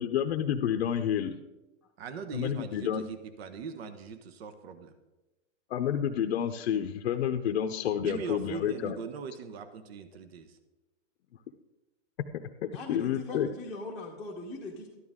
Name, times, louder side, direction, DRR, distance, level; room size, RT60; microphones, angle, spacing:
voice 1, 0.0-1.4 2.3-3.0 5.7-9.0 12.9-13.5, left 9 dB, 55° left, 4 dB, 0.8 m, -29 dB
voice 2, 2.0-4.9 7.9-10.6, right 6 dB, 55° right, 10 dB, 1.2 m, -40 dB
voice 3, 12.7-14.9, left 2 dB, ahead, -7 dB, 1.0 m, -40 dB
13.0 x 11.5 x 3.7 m, 1.0 s
hypercardioid pair, 150°, 37 cm